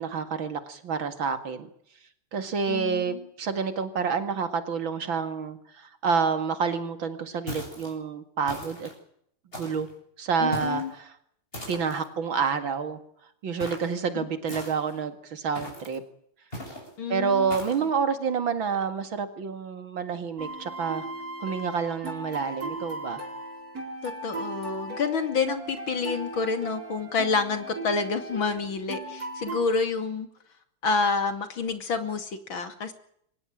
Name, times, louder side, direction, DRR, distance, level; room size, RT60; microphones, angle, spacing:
voice 1, 0.0-1.7 2.3-8.9 9.6-9.9 10.2-11.1 11.7-13.0 13.4-16.0 17.1-21.1 21.4-23.2, right 6 dB, 60° right, 9 dB, 2.8 m, -28 dB
voice 2, 2.7-3.2 10.4-10.9 17.0-17.5 24.0-30.3 30.8-32.9, left 4 dB, 60° left, 8 dB, 3.1 m, -28 dB
sound 1, 7.5-7.9 8.5-9.0 9.5-9.9 10.5-10.9 11.5-12.1 13.6-13.9 14.5-15.0 15.5-16.0 16.5-16.9 17.5-17.8, left 1 dB, 25° left, 7.7 m, -39 dB
sound 2, 20.4-29.6, right 2 dB, 40° right, 4.6 m, -37 dB
24.0 x 18.5 x 9.0 m, 0.69 s
omnidirectional pair, 2.4 m